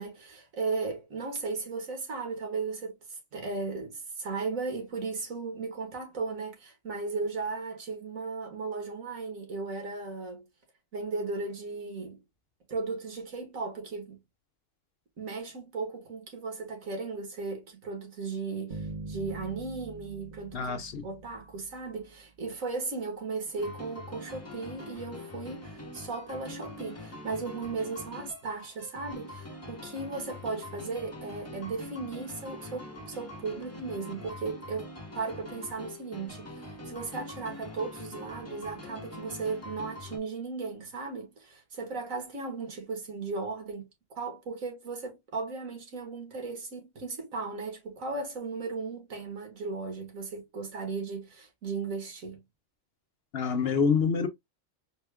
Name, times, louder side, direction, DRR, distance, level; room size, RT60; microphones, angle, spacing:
voice 1, 0.0-10.4 10.9-12.2 12.7-14.2 15.2-43.9 44.2-52.4, right 4 dB, 85° right, 1.9 m, -36 dB
sound 1, 18.7-22.1, right 3 dB, 40° right, 1.0 m, -43 dB
voice 2, 20.5-21.1 53.3-54.3, left 5 dB, 60° left, 0.8 m, -26 dB
sound 2, 23.6-40.2, left 1 dB, 15° left, 0.8 m, -44 dB
4.2 x 2.2 x 3.3 m
omnidirectional pair, 1.4 m